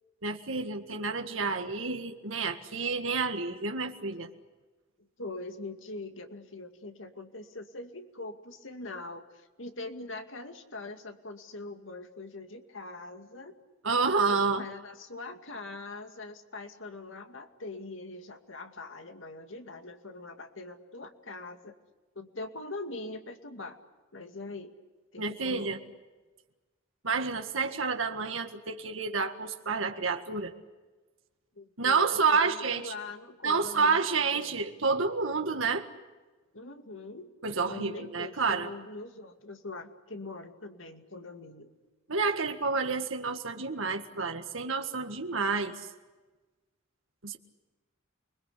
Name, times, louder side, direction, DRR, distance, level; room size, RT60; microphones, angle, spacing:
voice 1, 0.2-4.3 13.8-14.7 25.2-25.8 27.0-30.5 31.8-32.9 33.4-35.9 37.4-38.7 42.1-45.9 47.2-47.4, right 4 dB, 85° right, 5 dB, 1.8 m, -29 dB
voice 2, 5.2-13.6 14.3-21.7 22.2-23.8 24.1-24.8 25.1-25.7 31.6-34.0 34.3-34.7 36.5-37.3 37.7-41.7, left 2 dB, 75° left, 6 dB, 2.4 m, -42 dB
29.0 x 21.0 x 8.4 m, 1.2 s
head